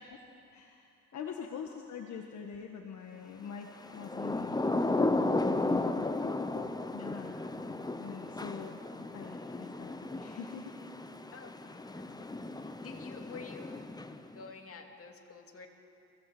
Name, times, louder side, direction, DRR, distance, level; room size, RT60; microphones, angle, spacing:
voice 1, 0.5-4.8 5.5-6.1 6.5-7.4 8.0-10.8, left 6 dB, 65° left, 2 dB, 1.6 m, -44 dB
Thunder / Rain, 3.9-14.4, left 2 dB, 15° left, 1.0 m, -34 dB
voice 2, 5.5-6.4 11.3-13.8 14.3-15.7, left 5 dB, 50° left, 3 dB, 2.4 m, -50 dB
24.0 x 16.5 x 7.9 m, 2.7 s
cardioid pair, 90°, 30 cm